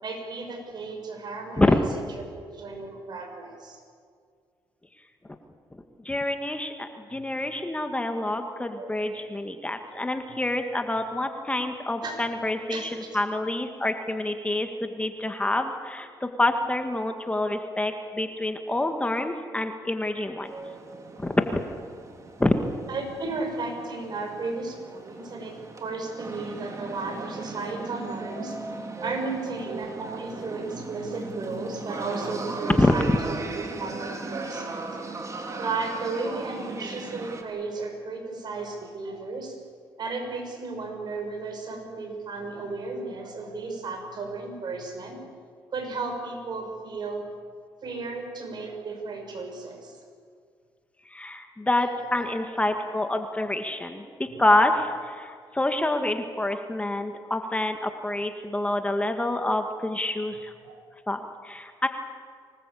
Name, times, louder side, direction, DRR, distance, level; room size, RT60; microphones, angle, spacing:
voice 1, 0.0-2.1 2.5-3.8 7.1-7.4 8.8-8.9 12.0-12.2 12.7-13.1 21.1-21.2 22.9-28.6 29.0-34.9 35.6-39.6 40.0-45.2 45.7-47.2 47.8-50.0 52.1-52.3 54.3-54.4 60.6-60.8, right 3 dB, 55° right, 4 dB, 6.4 m, -34 dB
voice 2, 6.0-20.5 21.2-21.6 22.4-22.6 32.8-33.0 51.1-60.5 61.1-61.9, left 1 dB, 15° left, 6 dB, 1.9 m, -27 dB
sound 1, 20.4-37.4, right 3 dB, 35° right, 3.6 m, -37 dB
25.0 x 19.5 x 8.6 m, 2.1 s
cardioid pair, 85°, 9 cm